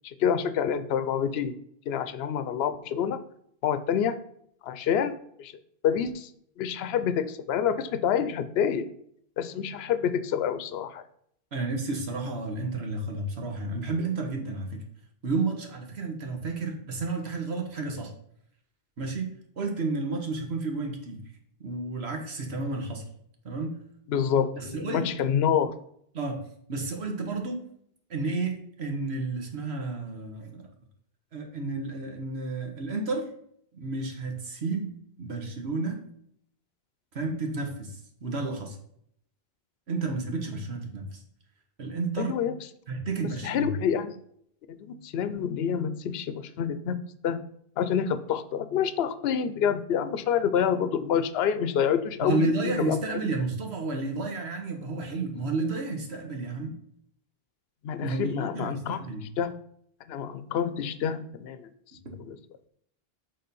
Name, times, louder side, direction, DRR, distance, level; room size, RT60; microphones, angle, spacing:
voice 1, 0.0-1.5 1.9-3.2 3.6-4.2 4.6-5.5 5.8-6.3 6.6-8.9 9.4-11.0 24.1-25.7 42.2-42.6 43.4-44.2 44.7-47.0 47.2-47.4 47.8-53.0 57.8-59.0 59.4-59.5 60.1-61.6 62.3-62.4, left 8 dB, 75° left, 12 dB, 0.8 m, -27 dB
voice 2, 11.5-14.8 15.2-18.1 19.0-21.2 21.6-23.1 23.4-23.8 24.6-25.1 26.1-26.4 26.7-27.6 28.1-30.7 31.3-33.3 33.7-34.9 35.2-36.0 37.1-38.8 39.9-41.2 41.8-42.4 42.9-43.7 52.2-56.8 58.0-59.2, right 3 dB, 90° right, 2 dB, 1.5 m, -31 dB
6.7 x 3.7 x 5.3 m, 0.68 s
omnidirectional pair, 1.1 m